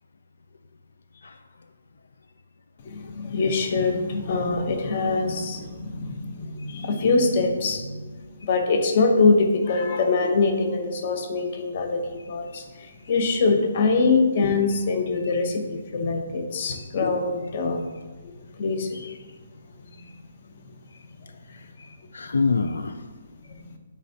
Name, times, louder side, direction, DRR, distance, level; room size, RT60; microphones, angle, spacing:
voice 1, 2.9-17.9 18.6-19.0, left 3 dB, 35° left, 5 dB, 0.7 m, -23 dB
voice 2, 21.6-23.0, left 4 dB, 80° left, 9 dB, 0.3 m, -28 dB
8.5 x 4.2 x 2.7 m, 1.3 s
hypercardioid pair, 170°, 0 cm